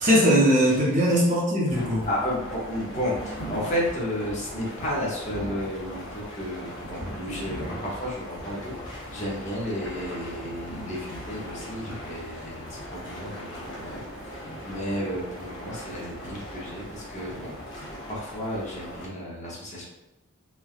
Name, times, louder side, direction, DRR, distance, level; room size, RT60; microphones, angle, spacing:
voice 1, 0.0-2.0, equal, 35° right, -5 dB, 0.7 m, -20 dB
sound 1, 1.7-19.1, equal, 60° left, 0.8 m, -39 dB
voice 2, 2.0-19.9, equal, 35° left, -4 dB, 0.7 m, -33 dB
3.2 x 2.3 x 2.3 m, 1.0 s
head